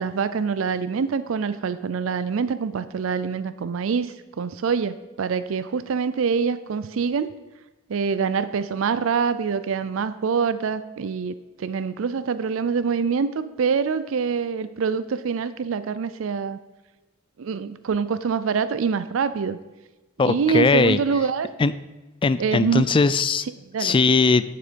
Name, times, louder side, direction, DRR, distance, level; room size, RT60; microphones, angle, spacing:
voice 1, 0.0-7.3 7.9-16.6 17.4-19.6 20.2-21.5 22.4-22.9 23.7-24.0, right 6 dB, 70° right, 14 dB, 0.4 m, -25 dB
voice 2, 20.2-21.0 21.6-21.7 22.2-23.5 23.8-24.4, left 4 dB, 25° left, 14 dB, 0.3 m, -19 dB
11.0 x 6.7 x 5.1 m, 1.1 s
head